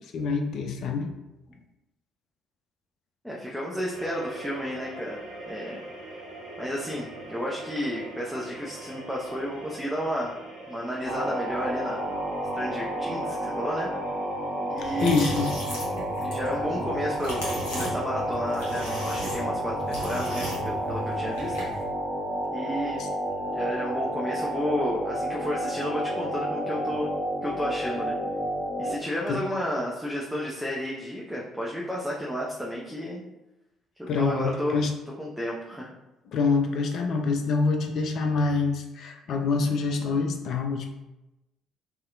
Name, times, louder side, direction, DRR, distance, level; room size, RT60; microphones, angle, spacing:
voice 1, 0.1-1.1 15.0-15.5 23.0-23.1 29.3-29.4 34.1-34.9 36.3-40.9, left 4 dB, 55° left, 4 dB, 0.3 m, -26 dB
voice 2, 3.2-5.2 5.5-6.2 6.6-10.3 10.7-12.0 12.5-13.9 14.7-15.3 16.2-21.5 22.5-23.0 23.5-27.1 27.4-28.1 28.8-33.2 34.1-34.8 35.2-35.9, equal, 5° right, -4 dB, 0.5 m, -32 dB
sound 1, 3.9-18.5, right 2 dB, 70° right, 0.6 m, -43 dB
sound 2, 11.0-28.9, equal, 30° left, 1.3 m, -31 dB
sound 3, 14.8-21.8, equal, 70° left, 0.7 m, -36 dB
2.7 x 2.0 x 2.4 m, 0.97 s
figure-of-eight pair, 45°, 0 cm